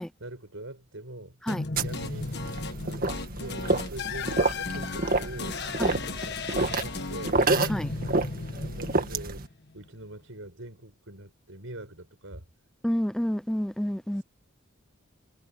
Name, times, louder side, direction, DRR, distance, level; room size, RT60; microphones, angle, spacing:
voice 1, 0.2-1.4 1.8-2.3 2.8-7.4 8.0-12.4 14.2-14.3, right 1 dB, 70° right, 6.1 m, -43 dB
sound 1, 1.5-9.7, left 3 dB, 55° left, 1.5 m, -35 dB
sound 2, 1.8-9.5, right 2 dB, 45° right, 1.9 m, -29 dB
voice 2, 12.8-14.2, equal, 5° left, 0.5 m, -29 dB
head